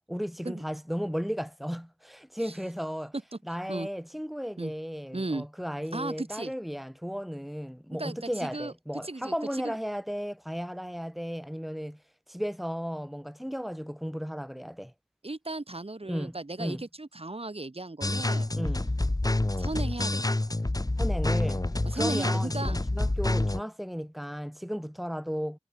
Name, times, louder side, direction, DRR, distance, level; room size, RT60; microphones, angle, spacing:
voice 1, 0.1-3.1 3.5-12.0 12.3-14.9 16.1-16.8 18.6-18.9 21.0-21.6 21.9-25.6, equal, ahead, 4.6 m, -35 dB
voice 2, 5.1-5.5 5.9-6.5 8.0-8.7 9.0-9.3 9.6-9.8 15.2-18.5 19.6-20.4 21.8-22.8 23.3-23.5, right 2 dB, 55° right, 7.4 m, -36 dB
sound 1, 18.0-23.6, left 2 dB, 30° left, 1.3 m, -27 dB
wide cardioid pair, 50°, 12 cm